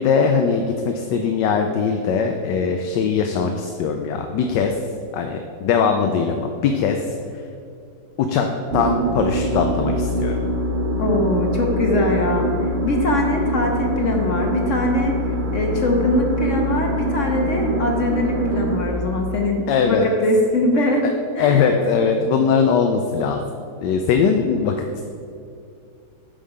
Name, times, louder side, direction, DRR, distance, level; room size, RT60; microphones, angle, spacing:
voice 1, 0.0-4.8 5.1-7.1 8.2-8.5 8.7-10.4 19.7-20.1 21.4-23.4 23.8-25.0, left 6 dB, 80° left, 4 dB, 1.2 m, -20 dB
sound 1, 8.7-18.8, equal, 50° right, 0.7 m, -24 dB
voice 2, 11.0-12.5 12.8-15.1 15.5-21.0 21.4-21.7, left 1 dB, 50° left, 1 dB, 1.2 m, -22 dB
8.8 x 5.5 x 4.9 m, 2.5 s
omnidirectional pair, 1.9 m